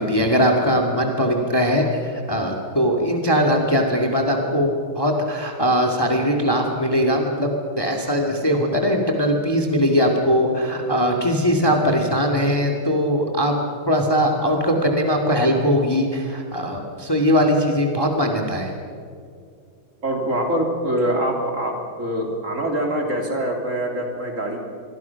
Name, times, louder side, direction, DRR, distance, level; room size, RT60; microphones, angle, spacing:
voice 1, 0.0-13.6 13.9-18.7, equal, 10° left, 2 dB, 2.2 m, -20 dB
voice 2, 20.0-24.6, right 1 dB, 40° right, 1 dB, 3.8 m, -24 dB
28.0 x 23.0 x 5.9 m, 2.3 s
omnidirectional pair, 2.2 m